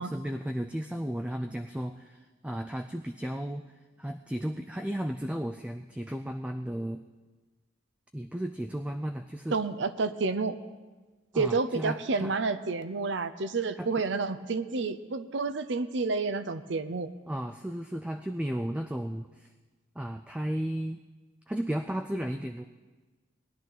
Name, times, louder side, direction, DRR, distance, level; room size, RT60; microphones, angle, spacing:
voice 1, 0.0-3.7 4.0-7.0 8.1-9.6 11.3-12.4 13.8-13.9 17.3-19.5 20.0-21.0 21.5-22.6, equal, 5° right, 6 dB, 0.3 m, -34 dB
voice 2, 9.5-10.5 11.3-17.1, right 4 dB, 60° right, 12 dB, 0.6 m, -30 dB
20.0 x 11.0 x 4.0 m, 1.3 s
head